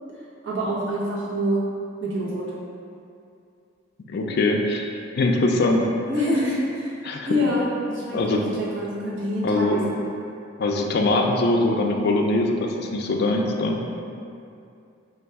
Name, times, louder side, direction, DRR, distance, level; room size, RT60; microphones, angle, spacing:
voice 1, 0.4-1.6 2.0-2.5 6.0-7.0 7.2-10.0, equal, 60° right, -7 dB, 0.9 m, -26 dB
voice 2, 4.1-4.9 5.1-5.8 7.0-7.3 8.1-8.4 9.4-9.8 10.6-13.8, left 2 dB, 50° left, 1 dB, 0.3 m, -22 dB
4.2 x 2.3 x 3.4 m, 2.5 s
head